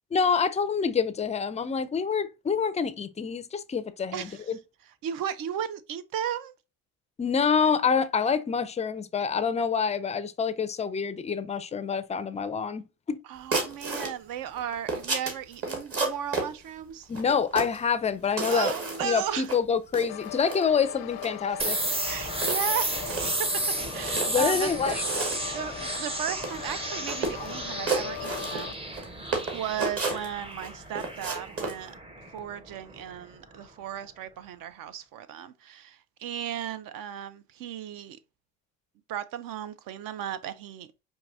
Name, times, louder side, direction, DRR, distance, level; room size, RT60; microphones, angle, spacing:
voice 1, 0.1-4.6 7.2-13.2 17.1-18.7 19.0-21.8 24.3-25.0, left 6 dB, 20° left, 0.3 m, -27 dB
voice 2, 4.1-4.6 5.0-6.5 13.2-17.1 18.4-19.5 22.0-25.0 25.5-28.7 29.5-32.0 32.3-38.2 39.1-41.0, right 9 dB, 65° right, 0.6 m, -35 dB
sound 1, 13.5-14.1 14.6-16.5 17.1-17.8 18.2-19.2 19.4-19.6 19.9-20.6 21.1-21.3 21.6-22.0 22.4-23.3 23.9-24.5 24.9-25.5 25.8-26.0 26.3-26.8 27.1-27.5 27.9-29.1 29.3-30.7 31.0-31.8, right 3 dB, 40° right, 1.4 m, -31 dB
sound 2, 20.1-28.7, left 12 dB, 85° left, 0.5 m, -39 dB
sound 3, 21.6-33.2, right 2 dB, 15° right, 0.6 m, -33 dB
4.6 x 2.7 x 2.5 m
supercardioid pair, 90°, 37 cm